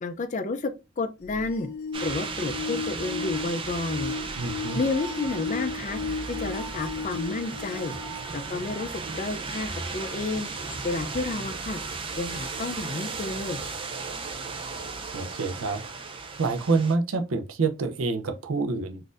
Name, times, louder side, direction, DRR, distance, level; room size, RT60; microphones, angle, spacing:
voice 1, 0.0-1.7 2.0-4.2 4.7-6.0 6.3-7.9 8.3-10.5 10.8-11.8 12.2-13.6, left 3 dB, 35° left, 0.4 m, -31 dB
sound 1, 1.2-8.9 9.6-9.7 10.7-10.8, left 4 dB, 55° left, 1.1 m, -35 dB
sound 2, 1.9-16.9, right 4 dB, 25° right, 0.4 m, -35 dB
voice 2, 4.3-4.8 15.1-15.8 16.4-19.0, right 4 dB, 85° right, 0.5 m, -27 dB
4.0 x 2.5 x 2.4 m
head